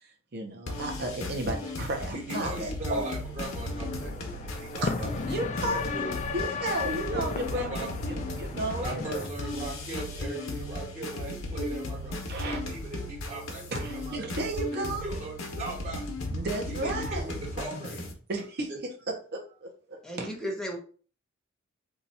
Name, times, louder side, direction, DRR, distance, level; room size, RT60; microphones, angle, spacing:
voice 1, 0.0-3.1 4.8-4.9 5.3-5.8 6.3-9.3 12.3-12.6 13.7-15.0 16.3-17.2 18.3-18.7 19.1-20.3, right 2 dB, 50° right, 1 dB, 0.7 m, -33 dB
sound 1, 0.7-18.1, left 1 dB, 80° left, 0.8 m, -36 dB
voice 2, 2.1-6.2 7.1-7.9 8.5-13.6 13.9-14.3 14.6-16.0 16.7-18.1 18.7-18.8, right 2 dB, 35° right, -6 dB, 1.3 m, -39 dB
sound 2, 3.4-9.3, left 5 dB, 35° left, 0.4 m, -35 dB
voice 3, 20.0-20.8, equal, ahead, 0 dB, 0.7 m, -34 dB
2.8 x 2.3 x 4.0 m, 0.41 s
head